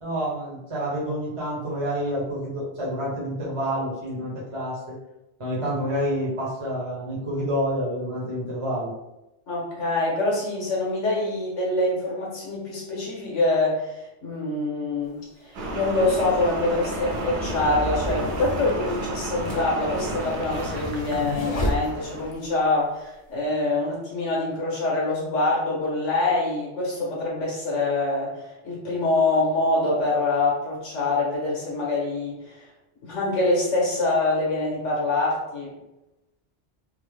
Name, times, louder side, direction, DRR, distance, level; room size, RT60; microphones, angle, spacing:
voice 1, 0.0-5.0 5.4-8.9, equal, 30° right, -6 dB, 1.0 m, -28 dB
voice 2, 9.5-32.6 33.0-35.7, left 2 dB, 85° left, -4 dB, 1.5 m, -25 dB
sound 1, 15.0-15.1 16.0-22.5, left 1 dB, 45° left, 0.5 m, -32 dB
sound 2, 15.5-22.3, right 2 dB, 65° right, 0.8 m, -32 dB
3.6 x 2.0 x 3.3 m, 0.93 s
omnidirectional pair, 1.2 m